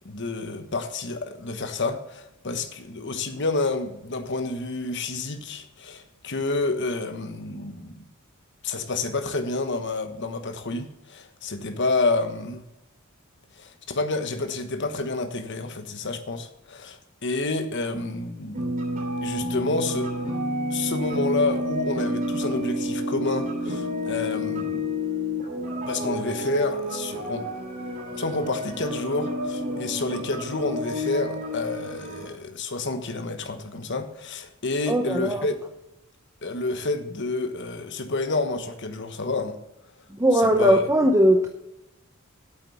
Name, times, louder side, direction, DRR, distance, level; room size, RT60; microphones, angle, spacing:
voice 1, 0.0-8.0 8.6-12.6 13.6-18.6 19.2-20.2 20.7-24.9 25.8-27.5 28.1-35.6 36.4-39.6 40.3-40.8, left 3 dB, 55° left, 1.2 m, -29 dB
sound 1, 18.5-32.3, left 1 dB, 40° right, 3.1 m, -30 dB
voice 2, 34.9-35.4 40.2-41.5, right 1 dB, 15° right, 0.7 m, -19 dB
8.5 x 8.3 x 7.2 m
head